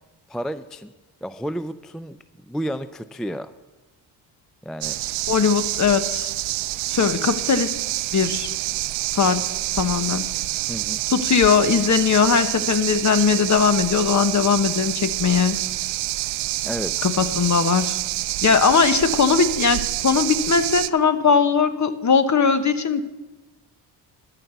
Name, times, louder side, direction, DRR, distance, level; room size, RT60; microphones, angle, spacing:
voice 1, 0.3-0.9 1.2-2.2 2.5-3.5 4.6-5.0 10.7-11.0 16.6-17.1, equal, ahead, 13 dB, 0.3 m, -31 dB
sound 1, 4.8-20.9, right 18 dB, 80° right, 0.5 m, -27 dB
voice 2, 5.3-6.3 6.9-7.7 8.1-8.5 9.1-9.5 9.8-10.3 11.1-15.6 17.0-18.0 18.4-23.0, left 6 dB, 35° left, 11 dB, 1.0 m, -19 dB
12.5 x 6.0 x 8.1 m, 1.1 s
cardioid pair, 70°, 47 cm